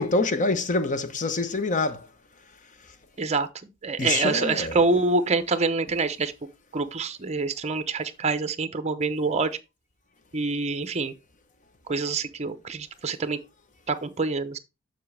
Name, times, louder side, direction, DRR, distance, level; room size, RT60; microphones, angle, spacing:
voice 1, 0.0-2.1 4.0-4.9, left 3 dB, 40° left, 0.8 m, -26 dB
voice 2, 3.2-3.5 3.8-6.3 6.7-9.6 10.3-11.1 11.9-13.4 13.9-14.6, right 3 dB, 30° right, 0.7 m, -26 dB
7.3 x 6.0 x 3.3 m
head